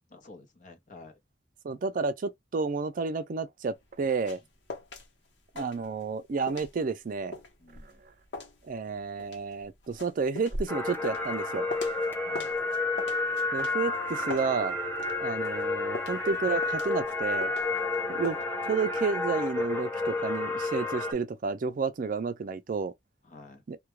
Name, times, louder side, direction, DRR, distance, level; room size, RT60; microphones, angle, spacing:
voice 1, 0.1-1.2 7.6-8.0 12.2-12.5 23.2-23.6, left 3 dB, 45° left, 0.8 m, -50 dB
voice 2, 1.6-4.4 5.6-7.4 8.7-11.7 13.5-14.8 15.2-17.5 18.1-18.4 18.6-22.9 23.7-23.8, right 4 dB, 50° right, 0.4 m, -31 dB
sound 1, 3.8-5.1 5.3-6.2 6.5-12.1 12.3-15.2 15.4-18.0 18.2-18.4, left 2 dB, 90° left, 0.9 m, -41 dB
sound 2, 10.7-21.1, left 3 dB, 10° left, 0.6 m, -30 dB
2.2 x 2.2 x 3.0 m
head